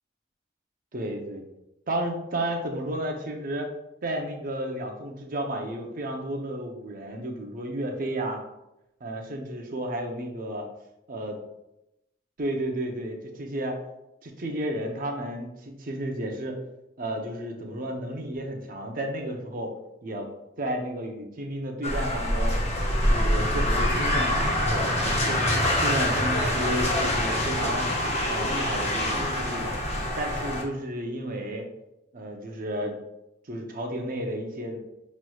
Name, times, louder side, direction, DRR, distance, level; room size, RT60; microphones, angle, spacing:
voice 1, 0.9-1.4 1.9-3.7 4.0-8.4 9.0-10.7 11.1-11.4 12.4-13.8 14.2-16.6 17.0-19.8 20.0-20.3 20.6-22.6 23.1-24.9 25.2-27.9 28.3-29.7 30.2-31.7 32.1-33.0 33.5-34.8, right 1 dB, 50° right, 2 dB, 0.7 m, -32 dB
sound 1, 21.8-30.6, left 1 dB, 35° left, 0.7 m, -25 dB
5.8 x 3.1 x 2.3 m, 0.89 s
head